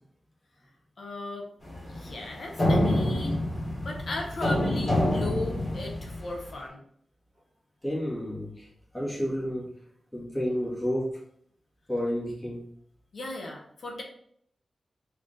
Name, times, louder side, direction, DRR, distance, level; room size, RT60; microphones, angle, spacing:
voice 1, 1.0-1.5 1.9-3.4 3.8-6.8 13.1-14.0, left 2 dB, 60° left, 0 dB, 1.0 m, -36 dB
sound 1, 1.6-6.5, left 1 dB, 30° left, 1.8 m, -27 dB
voice 2, 7.8-9.8 10.1-11.2 11.9-12.7, equal, 5° left, -5 dB, 1.6 m, -31 dB
3.6 x 3.5 x 3.8 m, 0.66 s
wide cardioid pair, 170°, 0 cm